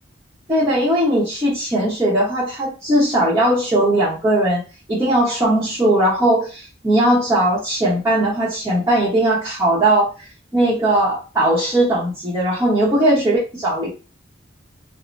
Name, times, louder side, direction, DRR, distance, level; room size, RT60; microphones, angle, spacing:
voice 1, 0.5-4.6 4.9-10.1 10.5-13.9, right 1 dB, 15° right, -8 dB, 0.9 m, -18 dB
3.2 x 2.1 x 2.5 m, 0.33 s
head